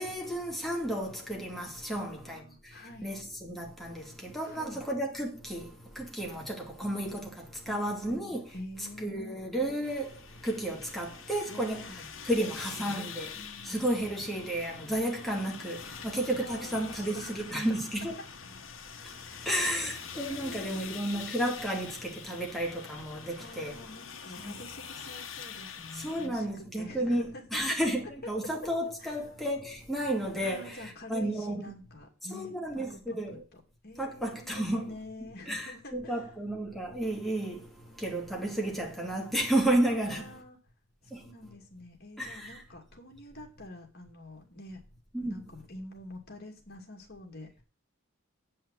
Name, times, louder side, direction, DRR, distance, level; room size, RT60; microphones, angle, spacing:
voice 1, 0.0-2.4 3.0-5.7 6.0-8.4 9.0-10.1 10.4-13.3 13.7-18.2 19.5-23.7 24.4-24.5 26.0-31.7 32.3-33.4 34.0-34.9 35.5-37.6 38.0-40.3 42.2-42.6 45.1-45.4, right 1 dB, ahead, 2.5 m, -32 dB
voice 2, 1.9-3.1 4.5-4.8 7.7-9.4 11.5-12.0 12.2-13.0 13.4-13.9 16.4-17.6 19.2-19.5 20.2-21.0 23.4-27.6 28.2-28.3 29.0-29.2 30.4-36.2 39.9-40.6 41.1-44.8 45.2-47.6, left 1 dB, 50° left, 2.6 m, -47 dB
sound 1, 9.8-26.3, left 6 dB, 70° left, 1.3 m, -45 dB
8.5 x 5.5 x 7.5 m
head